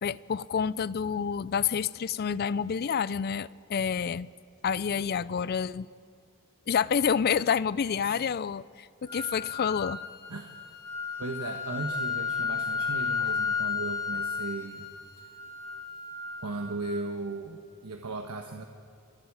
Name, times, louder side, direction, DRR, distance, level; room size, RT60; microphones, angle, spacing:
voice 1, 0.0-4.3 4.6-5.9 6.7-10.0, left 7 dB, 45° left, 19 dB, 0.4 m, -28 dB
sound 1, 9.1-17.1, left 5 dB, 20° left, 2.2 m, -33 dB
voice 2, 11.2-14.9 16.4-18.6, right 2 dB, 85° right, 4 dB, 1.2 m, -36 dB
28.0 x 19.5 x 4.8 m, 2.5 s
head